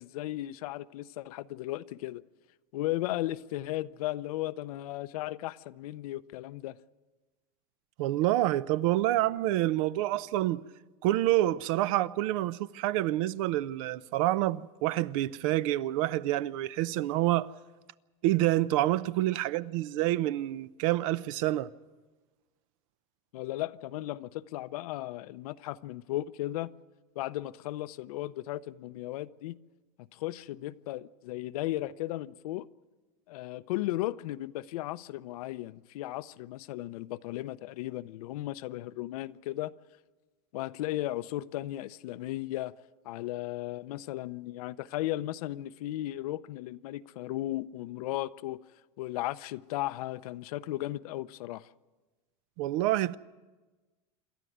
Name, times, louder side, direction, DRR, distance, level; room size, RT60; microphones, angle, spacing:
voice 1, 0.0-2.2 2.7-6.8 23.3-26.7 27.2-29.6 30.1-32.7 33.3-39.7 40.5-42.7 43.0-48.6 49.0-51.7, left 16 dB, 80° left, 0.7 m, -35 dB
voice 2, 8.0-10.6 11.0-17.5 18.2-21.7 52.6-53.2, right 15 dB, 60° right, 0.7 m, -27 dB
27.5 x 12.0 x 9.3 m
supercardioid pair, 140°, 19 cm